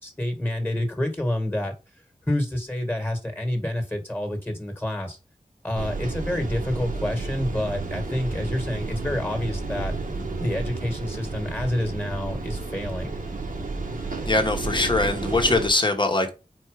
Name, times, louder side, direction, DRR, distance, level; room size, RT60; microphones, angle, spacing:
voice 1, 0.0-1.7 2.3-5.2 5.6-10.0 10.4-13.2, left 1 dB, 15° left, 1.6 m, -28 dB
sound 1, 5.8-15.7, right 3 dB, 80° right, 1.2 m, -31 dB
voice 2, 14.3-16.3, left 2 dB, 35° left, 1.3 m, -22 dB
4.5 x 4.3 x 4.9 m
wide cardioid pair, 80°, 14 cm